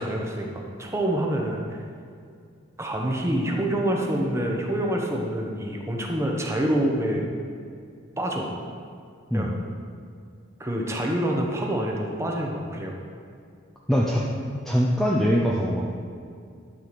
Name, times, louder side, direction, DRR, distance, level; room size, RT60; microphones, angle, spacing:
voice 1, 0.0-1.6 2.8-7.3 8.2-8.5 9.3-9.5 10.6-13.0, right 1 dB, 15° right, 0 dB, 1.1 m, -26 dB
voice 2, 13.9-14.2 14.7-15.9, equal, ahead, -5 dB, 0.6 m, -22 dB
12.0 x 4.8 x 6.8 m, 2.3 s
head